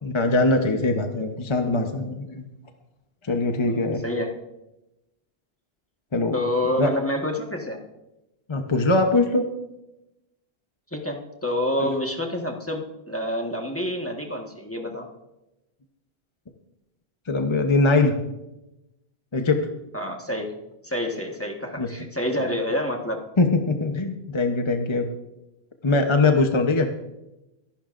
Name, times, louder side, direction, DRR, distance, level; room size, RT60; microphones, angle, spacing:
voice 1, 0.0-2.5 3.2-4.0 6.1-6.3 6.7-6.9 8.5-9.4 11.8-11.9 17.3-18.1 19.3-19.6 21.8-21.9 23.4-25.1 25.8-26.9, left 3 dB, 30° left, 4 dB, 0.8 m, -22 dB
voice 2, 3.6-4.3 6.3-7.8 10.9-15.1 19.9-20.5 20.8-23.2, left 1 dB, 15° left, 1 dB, 1.3 m, -28 dB
24.5 x 11.5 x 2.5 m, 0.96 s
omnidirectional pair, 1.1 m